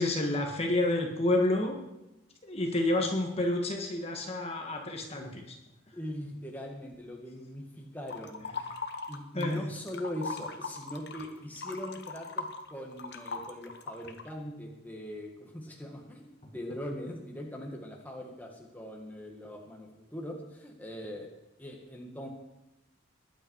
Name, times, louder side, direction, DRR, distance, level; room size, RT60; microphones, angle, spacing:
voice 1, 0.0-1.8 2.4-5.6 9.3-9.7, left 1 dB, 30° left, 2 dB, 1.7 m, -29 dB
voice 2, 5.9-8.7 9.1-21.3 21.6-22.3, equal, 10° left, 0 dB, 1.8 m, -41 dB
sound 1, 8.1-9.6 9.9-14.3, left 4 dB, 55° left, 1.3 m, -39 dB
20.5 x 9.1 x 4.8 m, 0.93 s
head